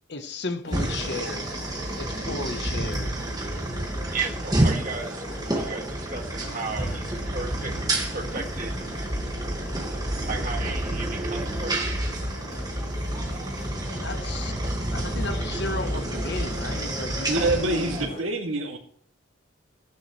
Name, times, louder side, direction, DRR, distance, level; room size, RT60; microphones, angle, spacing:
voice 1, 0.1-1.5 2.0-3.1 13.8-14.5 14.9-17.9, left 2 dB, 55° left, 1.1 m, -34 dB
sound 1, 0.6-18.2, left 1 dB, 35° left, 3.1 m, -41 dB
sound 2, 0.7-18.1, right 1 dB, 20° right, 1.8 m, -29 dB
voice 2, 4.1-7.7 8.1-8.8 10.3-12.1, right 4 dB, 40° right, 2.0 m, -34 dB
voice 3, 17.3-18.8, right 2 dB, 85° right, 2.5 m, -26 dB
15.5 x 10.5 x 3.2 m
head